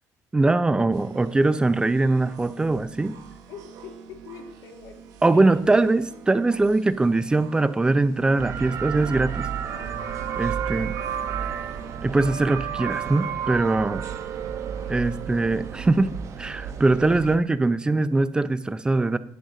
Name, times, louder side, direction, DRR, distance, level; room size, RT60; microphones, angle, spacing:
voice 1, 0.3-3.2 5.2-9.5 10.4-10.9 12.0-14.0 14.9-16.1 16.4-19.2, right 2 dB, 15° right, 14 dB, 0.5 m, -22 dB
sound 1, 0.9-12.0, right 7 dB, 85° right, 1.2 m, -46 dB
voice 2, 3.5-5.1 5.3-5.6 10.2-10.5 14.7-15.0, left 6 dB, 80° left, 2 dB, 1.3 m, -44 dB
sound 2, 8.4-17.4, right 8 dB, 55° right, 0.9 m, -31 dB
10.0 x 8.0 x 3.8 m, 0.72 s
cardioid pair, 120°, 6 cm